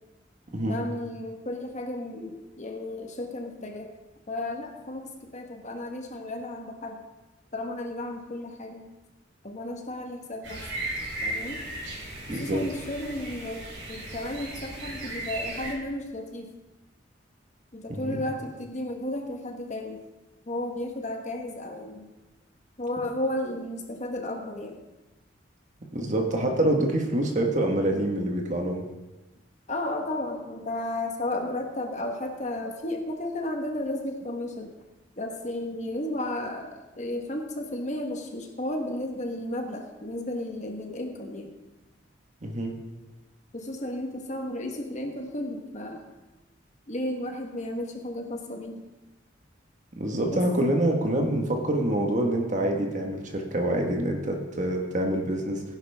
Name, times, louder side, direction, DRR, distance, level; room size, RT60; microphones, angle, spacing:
voice 1, 0.7-4.0 4.3-7.0 7.5-8.9 9.4-10.6 11.2-11.6 12.3-16.5 17.7-20.0 20.5-22.1 22.8-24.8 29.7-34.7 35.2-41.5 43.5-46.1 46.9-48.8 50.3-50.4, left 1 dB, 40° left, 3 dB, 1.3 m, -33 dB
sound 1, 10.4-15.7, right 1 dB, 75° right, 4.4 m, -36 dB
voice 2, 12.3-12.6 17.9-18.2 25.9-28.8 42.4-42.7 49.9-55.6, right 1 dB, 40° right, 2 dB, 1.6 m, -26 dB
16.5 x 10.5 x 3.6 m, 1.1 s
head